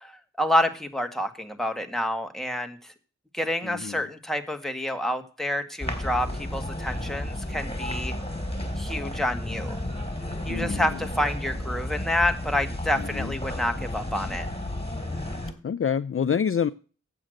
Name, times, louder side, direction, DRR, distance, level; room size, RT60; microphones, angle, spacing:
voice 1, 0.0-2.9 3.3-8.2 8.8-9.8 10.5-14.5, left 1 dB, ahead, 1.9 m, -28 dB
voice 2, 3.6-4.1 10.5-11.0 13.0-13.3 15.6-16.7, left 7 dB, 45° left, 0.5 m, -27 dB
sound 1, 5.8-15.5, left 1 dB, 20° left, 3.2 m, -32 dB
8.6 x 8.0 x 6.4 m
cardioid pair, 45°, 30 cm